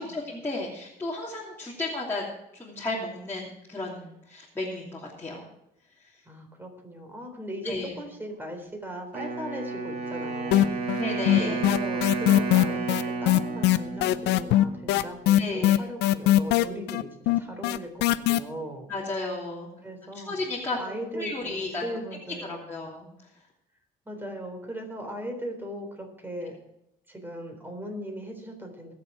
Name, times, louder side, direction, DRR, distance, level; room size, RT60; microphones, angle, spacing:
voice 1, 0.0-2.2 2.5-5.4 7.6-7.9 11.0-11.6 15.3-15.8 18.9-19.7 20.3-20.8 21.1-21.8 22.5-23.1, left 2 dB, 15° left, -6 dB, 2.9 m, -33 dB
voice 2, 6.3-10.8 11.4-18.9 19.8-20.4 20.8-22.8 24.1-26.6 27.1-28.9, equal, 10° right, 3 dB, 3.7 m, -38 dB
Wind instrument woodwind instrument, 9.1-15.1, right 4 dB, 65° right, 2.7 m, -32 dB
sound 1, 10.5-11.0 11.3-18.4, left 15 dB, 85° left, 0.6 m, -20 dB
21.0 x 7.1 x 4.8 m, 0.81 s
cardioid pair, 110°, 17 cm